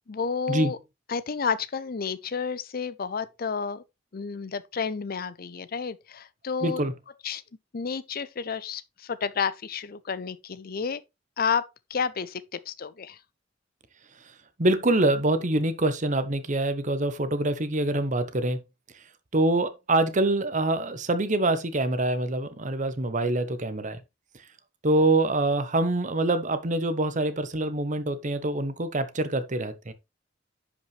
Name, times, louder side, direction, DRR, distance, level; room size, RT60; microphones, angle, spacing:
voice 1, 0.1-0.8 1.1-3.8 4.1-6.8 7.2-7.4 7.7-11.0 11.4-11.6 11.9-13.2, left 6 dB, 50° left, 0.6 m, -30 dB
voice 2, 6.6-6.9 14.6-18.6 19.3-24.0 24.8-29.9, right 2 dB, 40° right, 1.0 m, -25 dB
10.5 x 5.2 x 3.2 m
head